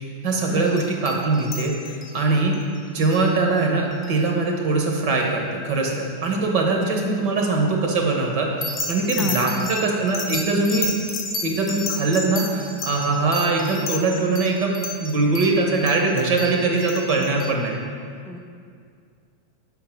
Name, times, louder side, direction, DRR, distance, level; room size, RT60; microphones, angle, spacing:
voice 1, 0.2-2.6 2.9-8.5 8.9-10.9 11.4-14.8 15.0-17.8, right 3 dB, 55° right, 1 dB, 1.1 m, -22 dB
sound 1, 0.6-2.2 2.5-2.6 3.0-3.3 4.0-4.2 8.6-17.5, left 2 dB, 30° left, 0.8 m, -32 dB
voice 2, 9.2-9.7 18.3-18.4, left 2 dB, 5° left, 1 dB, 0.4 m, -29 dB
5.4 x 3.8 x 5.9 m, 2.2 s
supercardioid pair, 140°, 0 cm